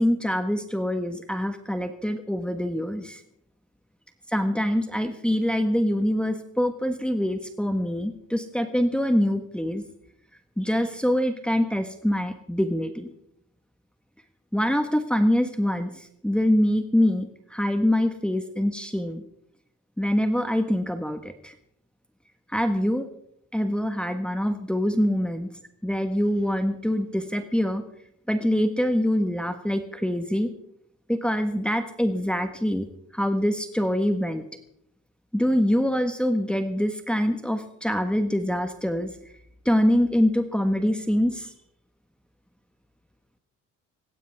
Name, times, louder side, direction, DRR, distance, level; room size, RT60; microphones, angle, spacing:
voice 1, 0.0-3.2 4.3-9.8 10.6-13.1 14.5-19.2 20.0-21.5 22.5-23.1 23.5-25.5 25.8-27.8 28.3-30.5 31.1-32.9 33.1-34.4 35.3-39.1 39.6-41.5, equal, 5° left, 7 dB, 1.4 m, -24 dB
19.5 x 15.5 x 3.5 m, 0.73 s
cardioid pair, 90°, 30 cm